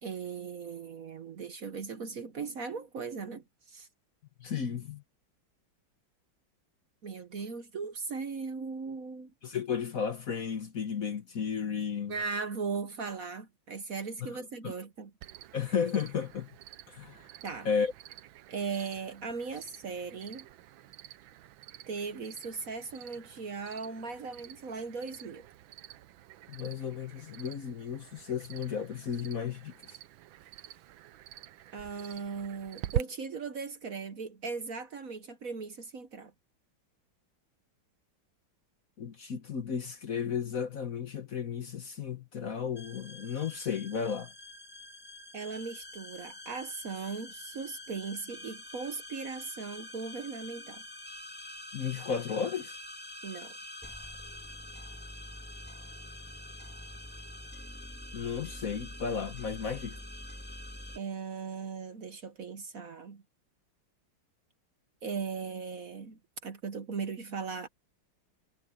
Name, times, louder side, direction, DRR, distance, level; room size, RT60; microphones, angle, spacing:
voice 1, 0.0-3.9 7.0-9.3 12.1-15.1 17.4-17.7 18.5-20.5 21.9-25.5 31.7-36.3 45.3-50.8 53.2-53.6 60.9-63.2 65.0-67.7, right 5 dB, 50° right, 1.3 m, -38 dB
voice 2, 4.4-5.0 9.4-12.2 14.2-14.7 15.5-16.5 16.9-17.3 17.6-17.9 26.5-30.0 39.0-44.3 51.7-52.8 58.1-60.0, left 7 dB, 50° left, 1.3 m, -34 dB
Cricket, 15.2-33.0, right 13 dB, 80° right, 1.5 m, -45 dB
sound 1, 42.8-61.0, left 1 dB, 5° left, 1.7 m, -46 dB
omnidirectional pair, 2.2 m